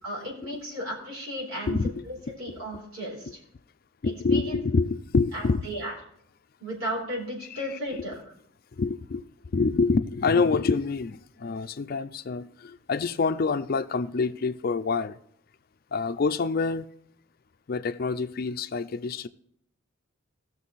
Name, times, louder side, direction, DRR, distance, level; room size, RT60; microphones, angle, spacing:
voice 1, 0.0-1.8 2.1-3.3 4.0-4.6 5.3-5.9 6.6-8.1, equal, 75° right, 4.1 m, -34 dB
voice 2, 1.7-2.0 4.0-5.6 7.5-7.8 8.8-15.2 15.9-16.9 17.7-19.3, left 4 dB, 45° left, 0.4 m, -26 dB
17.5 x 6.7 x 4.1 m
head